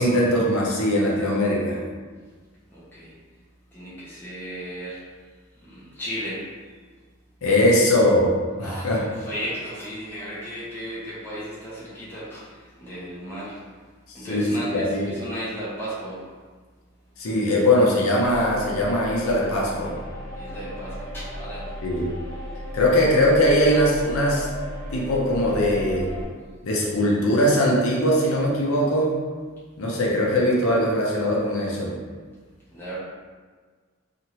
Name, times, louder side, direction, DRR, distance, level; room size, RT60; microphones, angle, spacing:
voice 1, 0.0-1.8 7.4-8.3 8.6-9.0 14.2-15.1 17.2-19.9 21.8-22.1 22.7-24.5 24.9-26.1 26.6-29.2 29.8-31.9, left 1 dB, 80° left, -3 dB, 0.6 m, -21 dB
voice 2, 2.7-3.1 3.7-5.0 5.6-6.4 8.6-13.6 14.1-16.2 20.4-21.7 23.0-23.1 32.7-33.0, equal, 10° left, -11 dB, 0.9 m, -35 dB
sound 1, 18.2-26.2, equal, 60° left, 1.1 m, -35 dB
2.8 x 2.5 x 3.0 m, 1.5 s
head